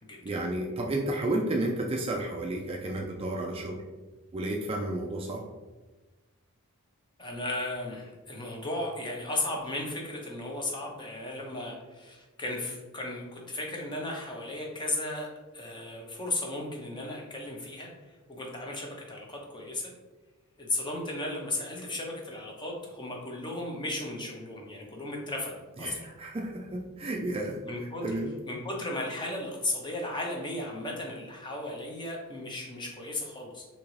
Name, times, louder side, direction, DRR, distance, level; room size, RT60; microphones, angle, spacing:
voice 1, 0.2-3.8 4.3-5.4 25.8-27.6 28.0-28.3, right 1 dB, 25° right, 0 dB, 0.3 m, -32 dB
voice 2, 7.2-19.9 20.6-26.0 27.6-28.0 28.5-33.7, left 2 dB, 20° left, 0 dB, 0.6 m, -35 dB
3.7 x 2.8 x 3.1 m, 1.2 s
head